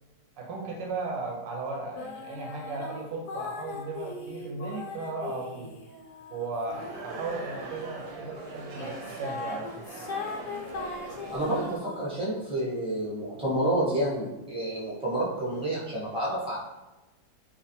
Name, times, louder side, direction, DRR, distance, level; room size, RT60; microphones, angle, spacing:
voice 1, 0.4-5.7 6.3-9.8, right 3 dB, 90° right, 0 dB, 1.2 m, -36 dB
sound 1, 2.0-8.2 8.7-12.4, left 4 dB, 75° left, 1.1 m, -40 dB
sound 2, 6.7-11.8, right 2 dB, 70° right, 0.9 m, -41 dB
voice 2, 11.3-16.6, right 1 dB, 5° right, -8 dB, 0.6 m, -29 dB
3.3 x 2.4 x 2.6 m, 1.0 s
omnidirectional pair, 1.8 m